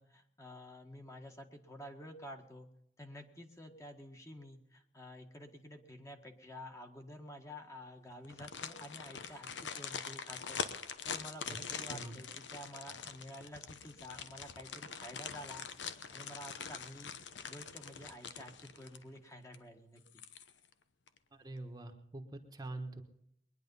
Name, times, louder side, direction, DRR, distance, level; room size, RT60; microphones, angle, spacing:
voice 1, 0.0-2.7 3.0-10.6 11.0-15.7 16.1-17.1 17.5-20.0, equal, 15° left, 4 dB, 1.7 m, -50 dB
sound 1, 8.2-19.2 19.5-19.6 20.1-20.7 21.1-21.2, left 6 dB, 85° left, 1.0 m, -44 dB
voice 2, 21.4-23.0, right 2 dB, 20° right, 5 dB, 1.3 m, -44 dB
21.5 x 10.5 x 5.5 m, 0.76 s
head